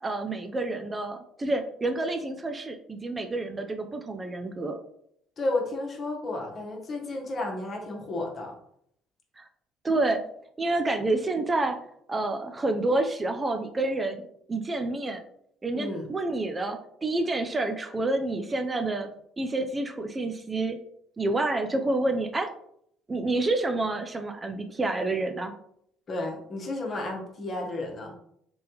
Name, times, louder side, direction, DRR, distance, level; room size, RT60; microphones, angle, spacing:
voice 1, 0.0-4.8 9.4-9.5 9.8-10.2 10.6-11.8 12.1-15.2 15.6-19.1 19.4-20.8 21.2-22.5 23.1-25.5, right 2 dB, 25° right, 5 dB, 0.5 m, -28 dB
voice 2, 5.4-8.5 15.7-16.1 26.1-28.1, left 2 dB, 45° left, 0 dB, 1.2 m, -32 dB
3.4 x 3.3 x 2.9 m, 0.70 s
hypercardioid pair, 65°, 0 cm